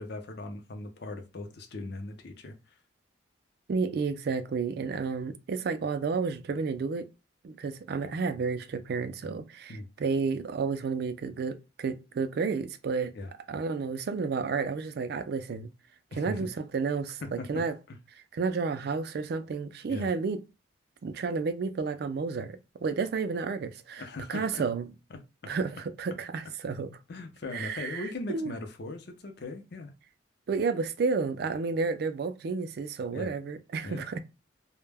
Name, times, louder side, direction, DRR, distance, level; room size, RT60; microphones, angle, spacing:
voice 1, 0.0-2.8 9.7-9.9 13.1-13.3 16.1-16.5 17.2-18.0 19.9-20.1 24.0-24.6 25.1-25.5 27.1-29.9 33.1-33.4 33.8-34.2, left 2 dB, 55° left, 0.5 m, -39 dB
voice 2, 3.7-7.1 7.4-13.1 13.5-15.7 16.2-17.7 18.3-20.4 21.0-24.0 24.3-24.9 25.5-27.0 27.5-28.5 30.5-34.2, right 4 dB, 55° right, 0.3 m, -31 dB
2.1 x 2.0 x 3.3 m
head